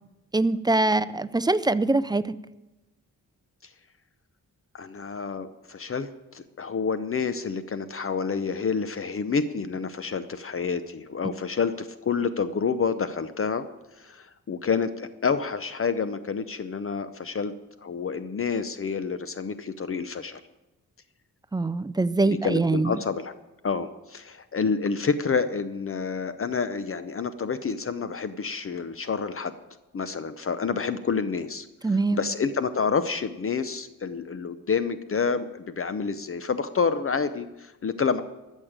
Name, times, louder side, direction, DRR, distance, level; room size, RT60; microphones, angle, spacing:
voice 1, 0.3-2.2 21.5-23.0 31.8-32.2, right 2 dB, 15° right, 15 dB, 0.4 m, -23 dB
voice 2, 4.7-13.7 14.0-17.5 17.8-20.4 22.2-23.3 23.6-29.5 29.9-38.2, left 5 dB, 40° left, 12 dB, 0.6 m, -28 dB
13.5 x 6.4 x 8.8 m, 1.1 s
cardioid pair, 95°, 33 cm